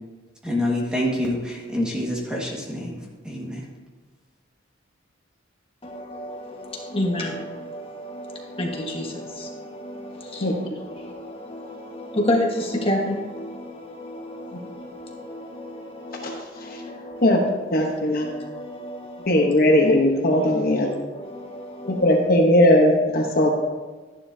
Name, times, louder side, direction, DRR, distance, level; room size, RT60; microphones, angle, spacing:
voice 1, 0.4-3.0 3.2-3.6, left 1 dB, 5° right, -3 dB, 1.7 m, -26 dB
voice 2, 5.8-19.8 20.3-20.5 20.8-22.3, left 1 dB, 30° left, 0 dB, 1.5 m, -31 dB
voice 3, 17.7-18.3 19.3-20.9 21.8-23.5, left 1 dB, 45° left, 1 dB, 1.1 m, -18 dB
12.0 x 10.5 x 2.8 m, 1.3 s
head